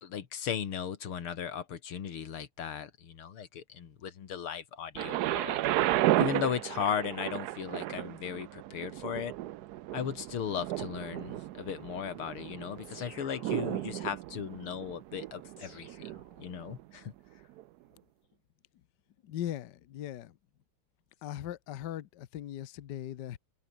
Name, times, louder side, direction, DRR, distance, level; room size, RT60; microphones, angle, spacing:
voice 1, 0.0-5.6 6.2-9.3 9.9-17.1, left 8 dB, 90° left, 2.7 m, -37 dB
Thunder, 5.0-16.8 17.6-17.7, right 15 dB, 85° right, 0.8 m, -34 dB
sound 1, 12.8-14.1 15.6-16.9, left 2 dB, 35° left, 4.8 m, -54 dB
voice 2, 19.2-20.3 21.2-23.4, left 11 dB, 60° left, 1.4 m, -39 dB
omnidirectional pair, 2.3 m